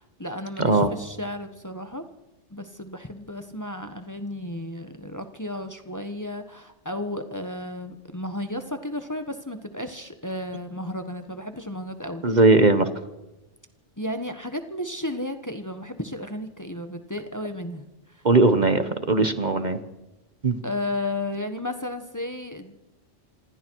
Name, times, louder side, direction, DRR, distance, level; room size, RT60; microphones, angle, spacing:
voice 1, 0.0-2.0 2.5-12.2 14.0-18.2 20.6-22.8, left 1 dB, 15° left, 7 dB, 1.3 m, -33 dB
voice 2, 0.6-0.9 12.2-12.9 18.2-19.8 20.4-20.6, right 3 dB, 40° right, 9 dB, 1.3 m, -19 dB
26.5 x 26.0 x 4.7 m, 1.0 s
omnidirectional pair, 1.2 m